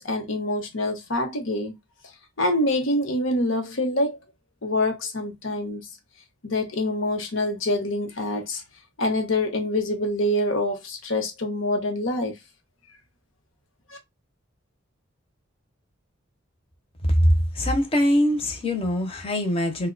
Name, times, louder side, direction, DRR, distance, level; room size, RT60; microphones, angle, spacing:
voice 1, 0.0-1.7 2.4-4.2 4.6-5.8 6.4-8.6 9.0-12.4, left 1 dB, 70° left, 0.9 m, -25 dB
voice 2, 17.1-19.9, equal, 30° left, 0.7 m, -22 dB
2.7 x 2.2 x 3.8 m
head